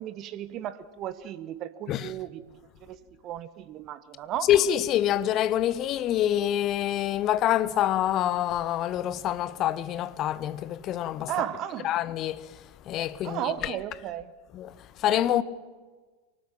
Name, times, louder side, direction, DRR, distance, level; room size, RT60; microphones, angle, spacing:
voice 1, 0.0-3.0 3.2-4.5 11.3-11.9 13.2-14.3, right 11 dB, 35° right, 1.1 m, -35 dB
voice 2, 4.5-11.3 11.8-12.4 12.9-13.7 14.5-14.7 15.0-15.4, left 11 dB, 35° left, 1.0 m, -26 dB
24.0 x 18.5 x 9.1 m
figure-of-eight pair, 90°, 0 cm